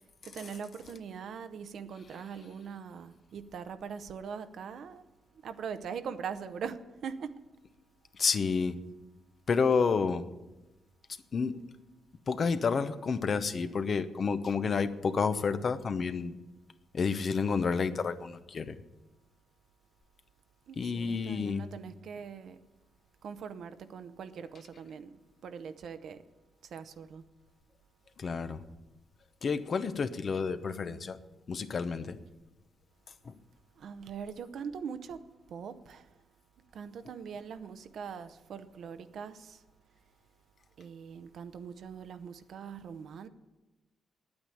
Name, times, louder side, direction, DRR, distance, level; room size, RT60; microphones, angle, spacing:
voice 1, 0.2-5.0 5.4-7.3 20.7-22.6 23.2-26.2 26.7-27.2 33.8-35.2 35.5-36.1 36.7-39.6 40.8-43.3, right 6 dB, 70° right, 11 dB, 0.8 m, -42 dB
voice 2, 8.1-8.8 9.5-10.2 11.3-11.6 12.3-16.4 16.9-18.8 20.8-21.7 28.2-28.6 29.4-31.2 31.5-32.2 33.2-33.4, left 5 dB, 50° left, 11 dB, 0.8 m, -30 dB
8.8 x 8.8 x 9.7 m, 1.1 s
cardioid pair, 75°, 0 cm